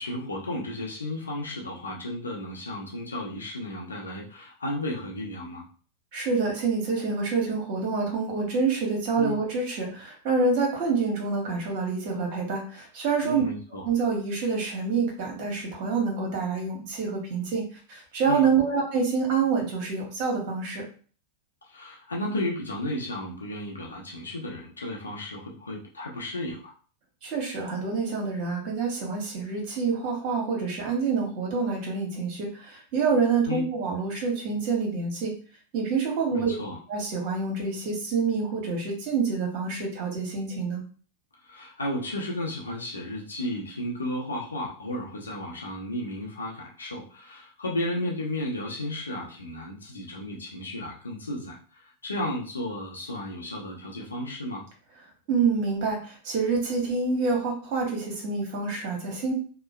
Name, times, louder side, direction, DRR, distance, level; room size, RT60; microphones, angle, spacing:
voice 1, 0.0-5.6 9.1-9.4 13.2-13.8 18.2-18.5 21.7-26.7 33.5-33.6 36.3-36.8 41.4-54.6, left 1 dB, 90° left, -2 dB, 0.8 m, -33 dB
voice 2, 6.1-13.4 13.8-20.8 27.2-35.3 35.7-36.5 36.9-40.8 55.3-59.3, right 4 dB, 50° right, 0 dB, 1.2 m, -27 dB
2.9 x 2.0 x 2.5 m, 0.40 s
hypercardioid pair, 95°, 0 cm